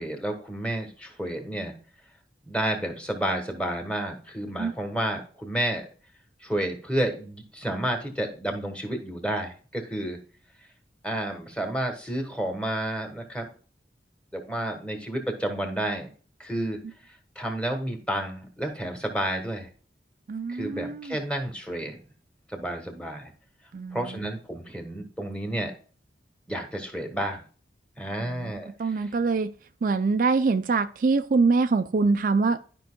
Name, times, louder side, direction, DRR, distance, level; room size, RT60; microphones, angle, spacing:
voice 1, 0.0-1.7 2.5-5.9 6.4-10.2 11.0-13.5 14.3-16.1 16.4-16.8 17.3-19.7 20.5-22.0 22.5-23.3 23.9-25.7 26.5-27.4 28.0-29.1, right 1 dB, 5° left, 1.3 m, -30 dB
voice 2, 20.3-21.2 23.7-24.0 28.2-29.5 29.8-32.6, right 4 dB, 50° right, 0.4 m, -24 dB
12.0 x 5.3 x 2.2 m
head